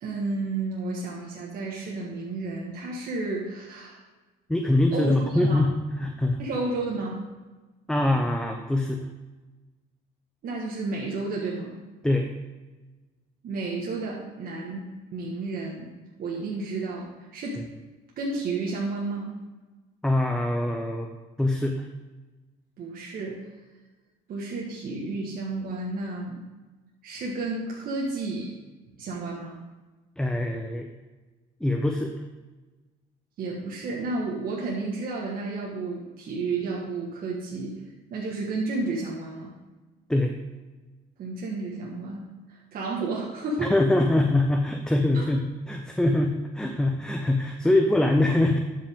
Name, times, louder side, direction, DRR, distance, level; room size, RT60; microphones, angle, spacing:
voice 1, 0.0-4.0 4.9-5.6 6.4-7.2 10.4-11.8 13.4-14.8 15.1-15.9 16.2-17.1 17.3-17.6 18.2-19.4 22.8-23.5 24.3-26.4 27.0-28.5 29.0-29.6 33.4-37.8 38.1-39.5 41.2-43.7 45.1-45.3, right 3 dB, 60° right, -3 dB, 1.5 m, -31 dB
voice 2, 4.5-6.4 7.9-9.0 12.0-12.3 20.0-21.1 21.4-21.9 30.2-30.9 31.6-32.1 40.1-40.3 43.6-48.6, left 1 dB, 5° left, 3 dB, 0.7 m, -23 dB
12.0 x 5.3 x 3.6 m, 1.2 s
cardioid pair, 110°, 17 cm